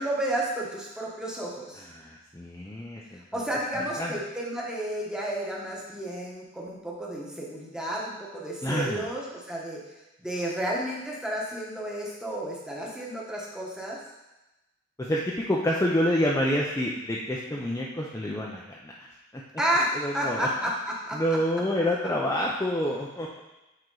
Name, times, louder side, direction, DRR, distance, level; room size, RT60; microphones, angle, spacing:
voice 1, 0.0-1.8 3.3-9.8 10.2-14.0 19.6-21.2, right 1 dB, 5° right, -3 dB, 1.1 m, -31 dB
voice 2, 1.8-3.4 3.7-4.1 8.6-9.0 15.0-19.1 19.3-19.4 19.9-20.5 21.1-23.4, equal, 15° left, -3 dB, 0.5 m, -28 dB
7.8 x 4.4 x 3.8 m, 1.0 s
head